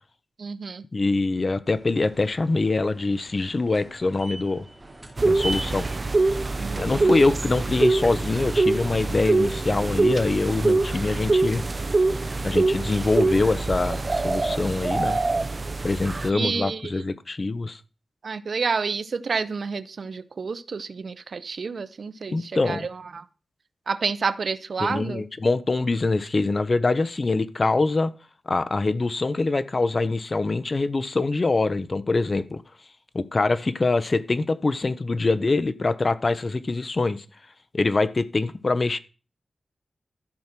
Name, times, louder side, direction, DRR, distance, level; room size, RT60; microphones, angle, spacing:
voice 1, 0.4-0.8 6.6-7.2 16.3-17.0 18.2-23.2 23.9-25.2, right 5 dB, 70° right, 0.7 m, -29 dB
voice 2, 0.9-4.6 5.2-5.9 6.8-11.6 12.4-15.2 15.8-17.8 22.3-22.9 24.8-28.1 28.5-32.6 33.1-37.2 37.7-39.0, left 3 dB, 45° left, 0.9 m, -24 dB
sound 1, 1.6-15.2, right 2 dB, 25° right, 3.1 m, -43 dB
sound 2, 5.2-16.3, right 3 dB, 40° right, 0.8 m, -24 dB
13.0 x 6.3 x 6.0 m
wide cardioid pair, 75°, 0 cm